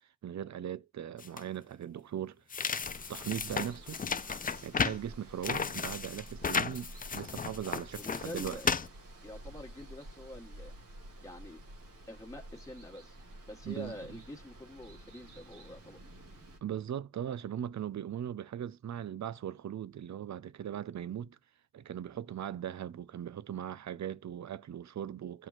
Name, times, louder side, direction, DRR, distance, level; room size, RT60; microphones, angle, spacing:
voice 1, 0.2-2.4 3.1-4.0 4.6-8.6 13.6-13.9 16.6-21.4 21.7-25.5, right 10 dB, 65° right, 0.6 m, -39 dB
sound 1, 1.2-1.4 2.5-5.0 5.4-8.9, left 5 dB, 30° left, 0.4 m, -34 dB
Water, 2.8-16.6, right 1 dB, 80° right, 1.9 m, -51 dB
voice 2, 7.9-8.7 9.2-10.7 11.2-11.6 12.1-13.2 13.5-16.0, left 1 dB, 10° left, 1.4 m, -46 dB
13.5 x 4.6 x 2.4 m
cardioid pair, 45°, 31 cm